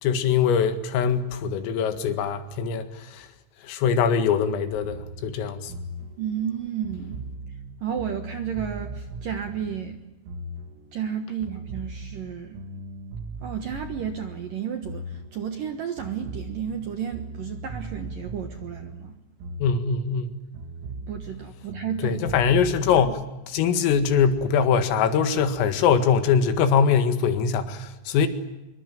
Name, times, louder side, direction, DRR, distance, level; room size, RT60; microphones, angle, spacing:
voice 1, 0.0-2.9 3.2-3.3 3.7-5.7 19.6-20.3 22.0-23.2 23.5-28.3, left 6 dB, 80° left, 4.5 m, -22 dB
sound 1, 4.8-11.1 11.4-15.7 16.0-20.3 20.5-23.1, right 2 dB, 85° right, 5.5 m, -38 dB
voice 2, 6.2-7.2 7.8-10.0 10.9-12.6 13.4-19.2 21.1-22.4, right 8 dB, 65° right, 2.2 m, -32 dB
26.0 x 23.5 x 9.0 m
omnidirectional pair, 5.9 m